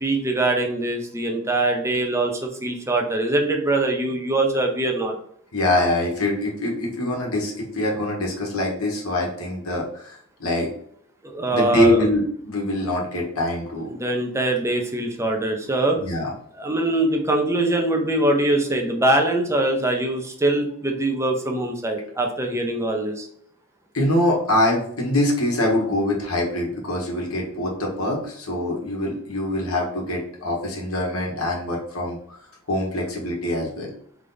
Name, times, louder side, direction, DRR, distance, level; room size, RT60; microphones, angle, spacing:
voice 1, 0.0-5.1 11.2-12.1 13.9-16.0 16.6-23.3, right 2 dB, 15° right, 3 dB, 0.7 m, -23 dB
voice 2, 5.5-10.7 11.5-13.9 16.0-16.3 23.9-32.4 32.7-33.9, left 1 dB, 75° left, -2 dB, 1.4 m, -24 dB
4.0 x 3.4 x 3.9 m, 0.63 s
head